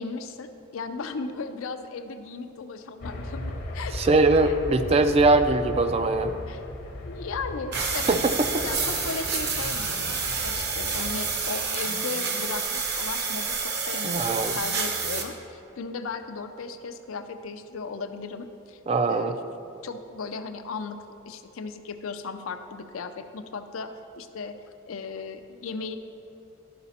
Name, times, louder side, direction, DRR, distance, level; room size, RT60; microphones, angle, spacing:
voice 1, 0.0-4.0 4.4-4.6 6.5-6.6 7.1-8.2 8.6-18.8 19.1-19.4 19.8-21.0 21.3-23.9 24.2-24.5 24.9-25.9, left 4 dB, 80° left, 8 dB, 0.5 m, -36 dB
sound 1, 3.0-11.8, left 1 dB, 45° left, 0.7 m, -37 dB
voice 2, 3.9-6.4 8.1-8.6 14.0-14.6 18.9-19.3, right 3 dB, 30° right, 9 dB, 0.3 m, -22 dB
sound 2, 7.7-15.2, right 5 dB, 50° right, 0.8 m, -29 dB
12.0 x 5.0 x 4.2 m, 2.7 s
head